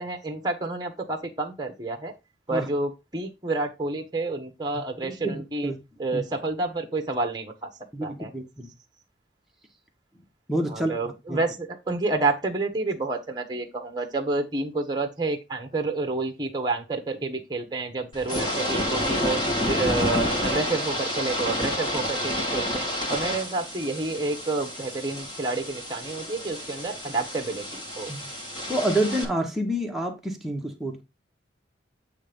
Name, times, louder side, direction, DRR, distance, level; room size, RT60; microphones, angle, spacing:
voice 1, 0.0-2.1 2.5-5.7 6.0-7.7 8.0-8.3 10.7-28.1, right 3 dB, 25° right, 1.2 m, -29 dB
voice 2, 5.0-5.8 6.1-6.2 7.9-8.7 10.5-10.9 11.3-11.4 28.1-28.2 28.7-31.0, right 1 dB, ahead, 1.4 m, -28 dB
sound 1, 18.1-29.2, left 1 dB, 25° left, 2.1 m, -29 dB
8.6 x 3.4 x 5.2 m
head